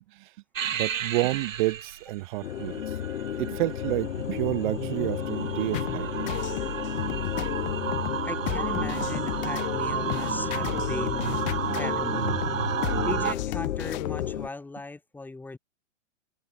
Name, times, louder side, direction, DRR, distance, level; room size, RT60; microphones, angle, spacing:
sound 1, 0.5-13.3, right 9 dB, 85° right, 3.3 m, -32 dB
voice 1, 0.7-3.0 3.4-6.3, right 20 dB, 40° right, 3.3 m, -30 dB
sound 2, 2.4-14.5, left 10 dB, 70° left, 6.0 m, -33 dB
sound 3, 5.7-14.4, left 23 dB, 35° left, 1.8 m, -35 dB
voice 2, 8.2-12.4 13.0-15.6, left 3 dB, 5° left, 7.4 m, -38 dB
hypercardioid pair, 155°, 38 cm